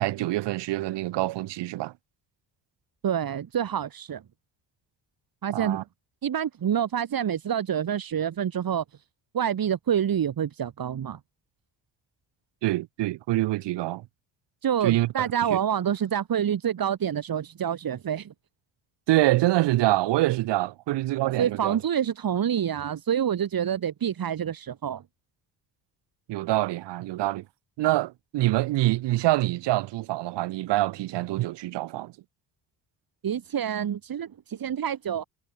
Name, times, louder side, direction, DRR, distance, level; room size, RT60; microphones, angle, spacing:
voice 1, 0.0-1.9 5.5-5.8 12.6-14.0 14.8-15.1 15.5-15.6 19.1-21.8 26.3-27.4 27.8-32.1, right 17 dB, 80° right, 3.8 m, -25 dB
voice 2, 3.0-4.2 5.4-5.8 6.2-8.8 9.3-11.2 14.6-18.3 21.4-25.0 33.2-35.3, right 9 dB, 55° right, 4.7 m, -27 dB
supercardioid pair, 70°, 41 cm